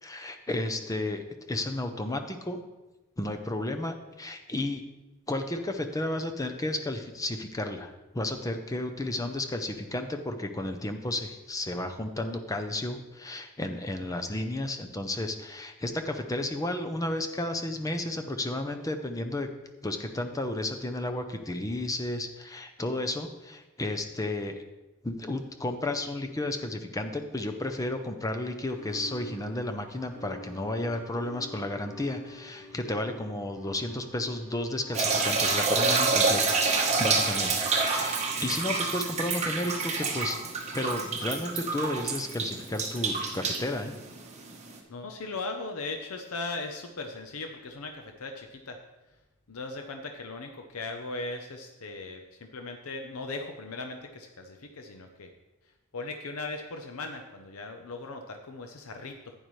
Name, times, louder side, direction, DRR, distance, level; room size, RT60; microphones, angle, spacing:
voice 1, 0.0-2.6 3.2-4.8 5.3-19.5 19.8-24.6 25.0-36.6 37.0-40.4 40.7-43.9, left 1 dB, 15° left, 6 dB, 0.6 m, -32 dB
sound 1, 28.7-40.6, left 1 dB, 10° right, 2.8 m, -49 dB
sound 2, 34.9-44.7, right 4 dB, 30° right, 1.1 m, -27 dB
voice 2, 37.8-38.2 44.9-48.8 49.5-55.3 55.9-59.3, left 3 dB, 80° left, 5 dB, 0.7 m, -38 dB
11.0 x 9.0 x 3.2 m, 1.1 s
head